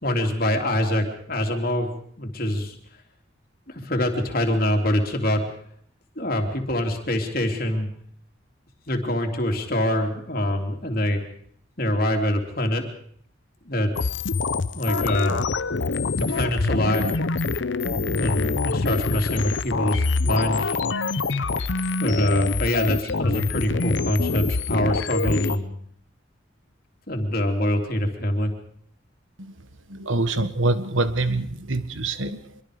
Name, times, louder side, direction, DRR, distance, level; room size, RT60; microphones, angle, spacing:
voice 1, 0.0-1.9 2.2-2.7 3.7-5.5 6.1-7.9 8.9-11.2 11.8-12.8 13.6-13.9 14.7-15.4 16.2-17.1 18.1-20.8 22.0-25.7 27.1-28.5, left 1 dB, 50° left, 3 dB, 3.3 m, -24 dB
sound 1, 14.0-25.6, left 3 dB, 70° left, 0.9 m, -25 dB
voice 2, 29.4-32.6, right 2 dB, 85° right, 11 dB, 1.5 m, -26 dB
25.5 x 23.0 x 5.1 m, 0.62 s
head